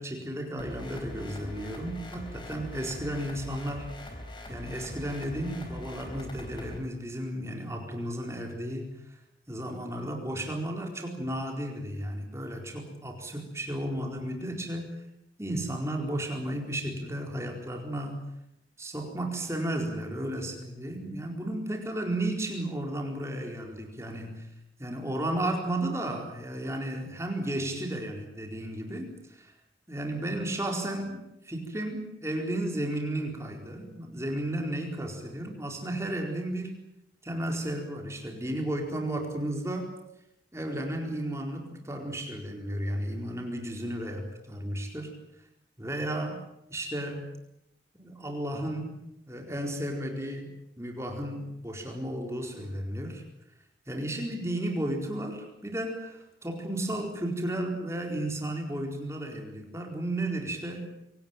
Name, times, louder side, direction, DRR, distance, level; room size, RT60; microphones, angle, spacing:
voice 1, 0.0-3.9 4.5-8.9 9.5-14.9 15.4-18.2 18.8-24.5 24.8-29.5 29.9-36.8 37.2-39.9 40.5-45.1 45.8-46.4 46.7-47.3 47.9-49.0 49.3-50.5 50.8-53.2 53.9-60.8, right 1 dB, 15° right, 2 dB, 4.4 m, -33 dB
sound 1, 0.6-6.8, left 1 dB, 25° left, 4.5 m, -42 dB
24.5 x 18.0 x 9.2 m, 0.84 s
head